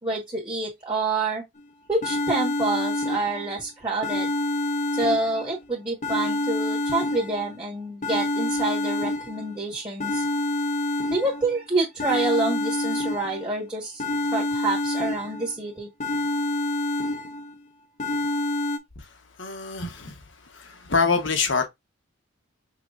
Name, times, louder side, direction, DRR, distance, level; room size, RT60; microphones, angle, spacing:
voice 1, 0.0-1.4 1.9-4.3 4.9-10.2 11.1-14.0 14.3-15.9, right 2 dB, 20° right, 1.6 m, -27 dB
sound 1, 1.6-1.7 2.0-3.6 4.0-5.6 6.0-7.6 8.0-9.6 10.0-11.6 12.0-13.6 14.0-15.6 16.0-17.6 18.0-18.8, left 2 dB, 40° left, 0.7 m, -27 dB
voice 2, 19.4-21.7, left 4 dB, 70° left, 1.2 m, -26 dB
5.8 x 3.1 x 2.6 m
head